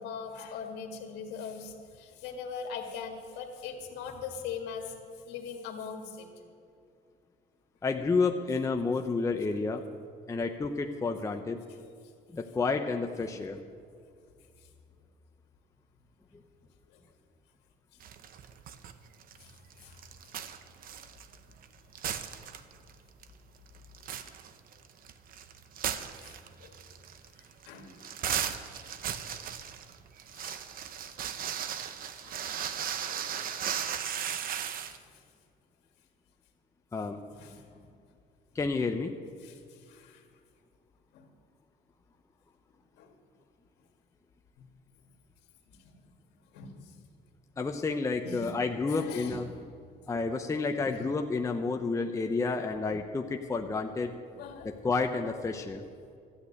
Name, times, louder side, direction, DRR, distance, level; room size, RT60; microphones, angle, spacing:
voice 1, 0.0-5.0 5.3-6.3 13.3-13.4 16.9-17.0 19.4-19.5 19.8-20.0 26.2-26.7 27.7-28.1 28.6-29.1 30.3-30.6 32.2-32.4 33.1-33.3 34.0-34.1 34.8-35.0 37.3-37.9 39.4-40.2 41.1-41.3 43.0-43.1 44.6-44.7 45.7-45.9 46.5-47.0 48.2-48.5 48.9-49.4 50.9-51.0 54.4-54.7, left 6 dB, 90° left, 3 dB, 1.9 m, -42 dB
voice 2, 7.8-9.8 10.3-11.6 12.3-13.6 36.9-37.2 38.5-39.1 47.6-49.5 50.1-54.1 54.6-55.8, left 4 dB, 20° left, 4 dB, 0.7 m, -30 dB
sound 1, 18.0-18.9 19.2-21.7 21.9-22.9 23.2-23.3 23.7-35.0, right 8 dB, 60° right, 0.8 m, -36 dB
13.0 x 8.2 x 8.5 m, 2.3 s
cardioid pair, 110°, 17 cm